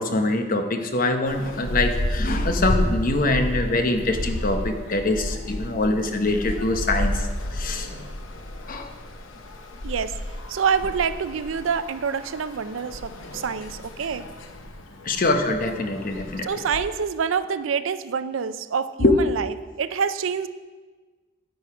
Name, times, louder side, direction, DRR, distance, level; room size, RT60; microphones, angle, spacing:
voice 1, 0.0-7.9 8.7-8.9 15.0-16.5 19.0-19.1, left 2 dB, 45° left, 6 dB, 0.8 m, -24 dB
sound 1, 1.3-16.8, left 1 dB, 85° left, 0.9 m, -31 dB
voice 2, 9.8-10.2 10.5-14.2 16.4-20.5, right 6 dB, 85° right, 13 dB, 0.5 m, -26 dB
10.0 x 6.4 x 4.9 m, 1.3 s
head